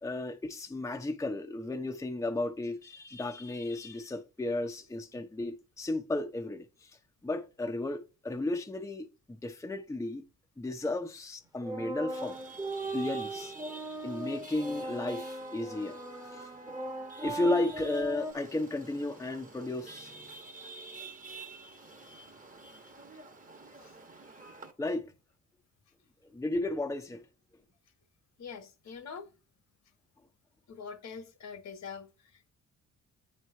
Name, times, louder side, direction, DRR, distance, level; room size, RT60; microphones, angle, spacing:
voice 1, 0.0-6.9 7.2-10.2 10.6-12.4 12.9-13.5 14.0-16.0 16.3-16.5 17.2-20.4 24.8-25.1 26.3-27.2, left 2 dB, 10° left, 0.8 m, -34 dB
sound 1, 11.6-18.3, right 2 dB, 10° right, 1.2 m, -38 dB
Chatter / Vehicle horn car horn honking / Traffic noise roadway noise, 12.1-24.7, right 3 dB, 25° right, 1.4 m, -49 dB
voice 2, 28.4-29.4 30.7-32.5, left 6 dB, 65° left, 1.4 m, -45 dB
8.8 x 3.2 x 5.5 m
cardioid pair, 90°, 30 cm